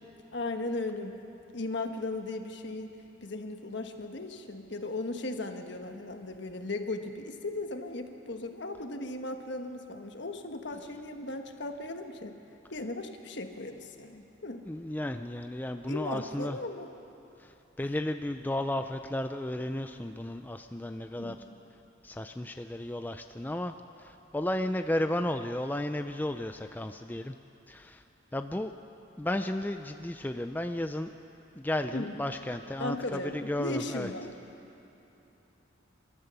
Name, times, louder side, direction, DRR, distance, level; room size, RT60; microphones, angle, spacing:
voice 1, 0.3-1.1 1.5-2.9 3.2-12.3 12.7-14.6 15.9-16.9 21.1-21.6 31.9-32.1 32.8-34.3, left 2 dB, 60° left, 5 dB, 1.4 m, -37 dB
voice 2, 14.7-16.6 17.4-17.5 17.8-21.4 22.0-23.7 24.0-27.3 27.7-28.0 28.3-28.7 29.2-31.1 31.6-34.1, left 1 dB, 10° left, 7 dB, 0.4 m, -33 dB
28.5 x 13.5 x 6.9 m, 2.9 s
head